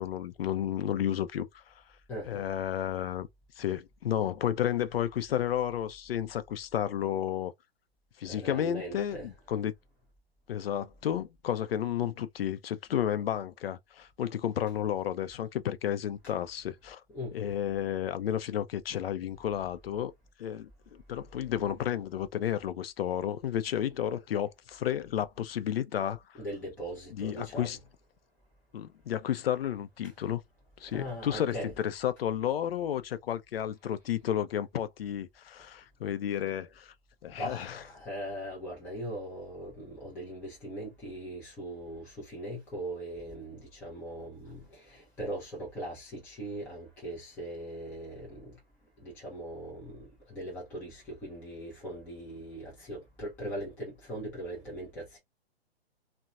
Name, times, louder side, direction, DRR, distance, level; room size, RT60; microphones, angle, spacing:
voice 1, 0.0-1.7 2.3-3.3 3.6-7.5 8.2-9.7 10.5-17.0 17.3-20.1 20.4-26.2 27.1-27.8 28.7-30.4 30.8-36.9 37.2-37.8, left 10 dB, 65° left, 0.5 m, -32 dB
voice 2, 2.1-2.5 8.2-9.3 17.1-17.6 26.3-27.7 30.9-31.7 37.3-48.6 49.0-55.2, right 1 dB, 5° left, 0.4 m, -40 dB
2.7 x 2.1 x 2.3 m
figure-of-eight pair, 125°, 32 cm